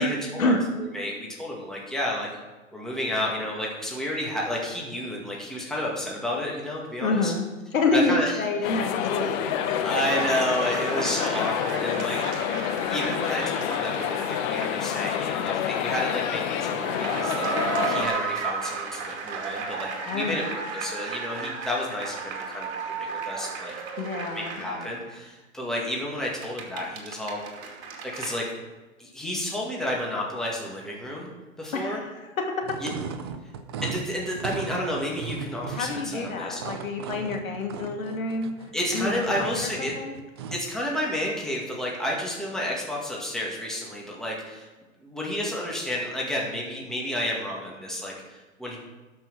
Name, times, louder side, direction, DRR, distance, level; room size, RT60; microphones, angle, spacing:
voice 1, 0.0-2.3 2.7-7.3 7.9-8.4 9.8-12.4 12.9-17.5 17.9-23.7 24.3-27.5 28.1-28.5 29.0-31.3 31.6-32.0 32.8-32.9 33.8-36.6 38.7-39.9 40.5-44.7 45.0-48.8, left 1 dB, ahead, -3 dB, 2.0 m, -31 dB
voice 2, 7.0-7.5 7.7-9.8 10.9-11.3 11.8-12.0 20.1-20.4 24.0-24.9 31.7-32.1 32.4-32.6 35.8-38.5 38.9-40.2, left 3 dB, 75° left, 2 dB, 2.6 m, -28 dB
sound 1, 8.6-18.1, left 9 dB, 35° left, 0.9 m, -28 dB
sound 2, 10.1-15.2 15.5-15.6 16.5-25.2 26.2-28.4, right 5 dB, 50° right, 2.4 m, -34 dB
sound 3, 32.6-40.7, right 5 dB, 20° right, 0.3 m, -37 dB
12.0 x 6.1 x 6.3 m, 1.2 s
hypercardioid pair, 130°, 41 cm